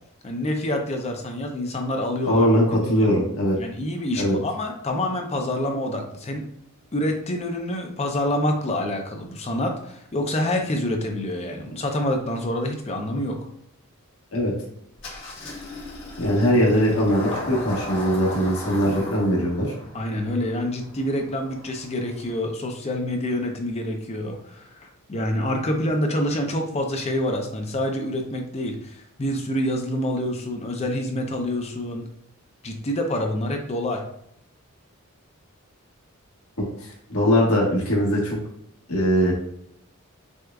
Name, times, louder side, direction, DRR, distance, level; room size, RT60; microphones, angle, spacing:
voice 1, 0.2-2.5 2.9-3.1 3.6-6.4 6.9-13.4 19.9-32.0 32.6-34.0, left 1 dB, 30° left, 3 dB, 0.5 m, -27 dB
voice 2, 2.3-3.6 4.2-4.4 14.3-14.5 16.2-19.7 36.6-38.4 38.9-39.3, equal, 75° left, -3 dB, 1.4 m, -21 dB
Engine starting, 15.0-22.3, left 1 dB, 55° left, 1.4 m, -36 dB
6.2 x 2.4 x 2.3 m, 0.72 s
head